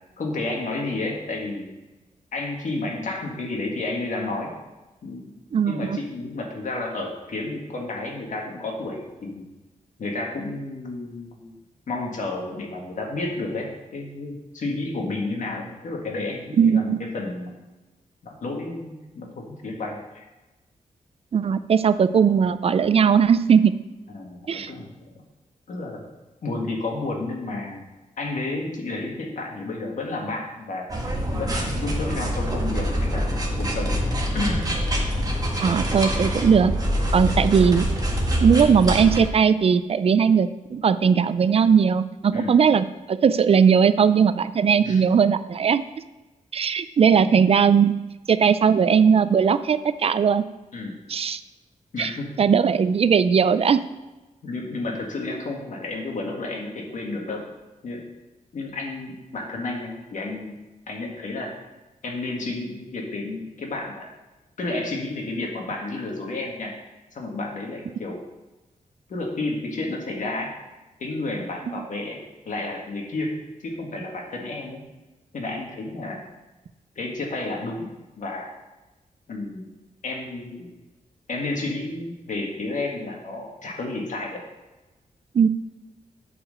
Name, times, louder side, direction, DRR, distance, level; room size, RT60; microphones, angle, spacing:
voice 1, 0.2-1.7 2.3-4.5 5.0-5.4 5.6-9.4 10.0-11.5 11.9-17.6 18.2-20.2 24.1-25.2 25.7-26.0 26.4-27.8 28.2-30.9 31.3-34.0 34.3-34.7 42.3-42.5 44.8-45.0 50.7-51.0 51.9-52.3 54.4-57.4 57.8-58.0 58.5-60.5 60.9-61.5 62.0-64.1 64.6-66.7 67.1-68.2 69.1-70.5 71.0-72.2 72.5-73.3 73.6-74.8 75.3-76.2 77.0-77.9 78.2-78.5 79.3-79.6 80.0-80.8 81.3-84.4, left 2 dB, 70° left, 0 dB, 1.9 m, -31 dB
voice 2, 5.5-6.0 16.6-17.0 21.3-23.7 24.5-24.7 35.6-36.7 37.1-37.9 38.4-45.8 46.5-47.9 48.3-50.4 51.1-51.4 52.0-52.1 52.4-53.8 85.3-85.5, right 6 dB, 45° right, 13 dB, 0.4 m, -19 dB
sound 1, 30.9-39.2, equal, 25° right, 1.5 m, -25 dB
8.8 x 4.9 x 6.5 m, 1.1 s
wide cardioid pair, 140°, 14 cm